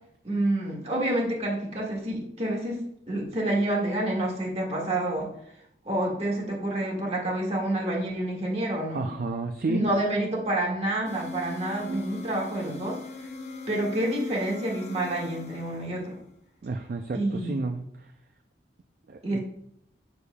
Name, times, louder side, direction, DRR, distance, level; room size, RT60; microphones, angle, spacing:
voice 1, 0.2-2.8 3.1-5.3 5.8-9.0 9.7-13.0 13.7-16.2 17.1-17.6 19.2-19.4, right 1 dB, 35° right, -1 dB, 1.6 m, -28 dB
voice 2, 8.9-9.9 11.9-12.0 16.6-18.1 19.1-19.4, right 3 dB, 55° right, 6 dB, 0.4 m, -32 dB
sound 1, 11.0-16.3, left 3 dB, 40° left, 0.8 m, -40 dB
6.9 x 6.4 x 2.2 m, 0.73 s
head